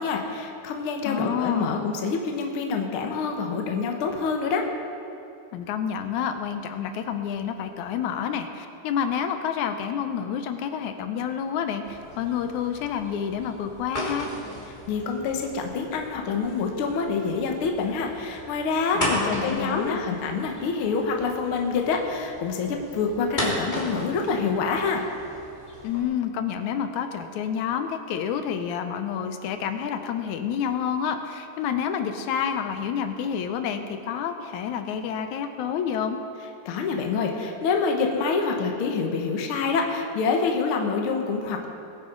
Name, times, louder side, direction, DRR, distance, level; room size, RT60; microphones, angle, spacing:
voice 1, 0.0-4.7 14.9-25.0 36.7-41.7, left 5 dB, 55° left, 2 dB, 1.7 m, -26 dB
voice 2, 1.1-1.8 5.5-14.3 18.9-20.0 25.8-36.2, left 8 dB, 80° left, 7 dB, 2.2 m, -29 dB
sound 1, 11.8-26.0, equal, 15° left, 2.4 m, -36 dB
21.5 x 9.3 x 3.9 m, 2.7 s
omnidirectional pair, 3.5 m